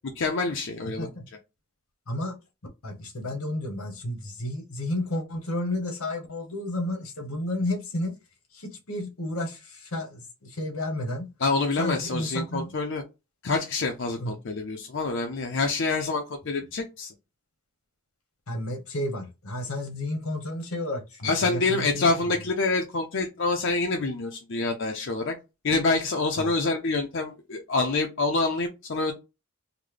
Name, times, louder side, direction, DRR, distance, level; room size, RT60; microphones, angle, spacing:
voice 1, 0.2-1.1 11.4-13.0 13.4-17.1 21.2-25.3 25.6-29.1, left 3 dB, 60° left, 0.5 m, -26 dB
voice 2, 2.8-8.1 8.5-11.3 11.8-12.7 14.2-14.4 18.5-22.1 26.4-26.5, left 1 dB, 90° left, 1.1 m, -32 dB
3.8 x 2.1 x 3.2 m
head